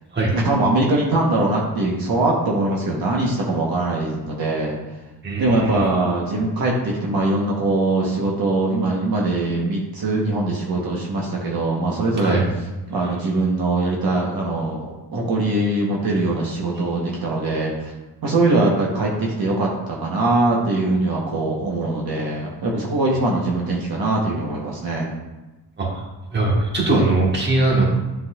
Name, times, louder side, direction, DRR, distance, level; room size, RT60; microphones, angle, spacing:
voice 1, 0.3-4.8 5.4-12.4 12.9-17.9 18.2-25.1, right 2 dB, 60° right, -2 dB, 1.2 m, -22 dB
voice 2, 5.2-5.8 12.2-12.4 25.8-26.0 26.3-27.8, right 2 dB, 25° right, -3 dB, 1.4 m, -20 dB
10.5 x 4.0 x 2.4 m, 1.1 s
wide cardioid pair, 165°, 40 cm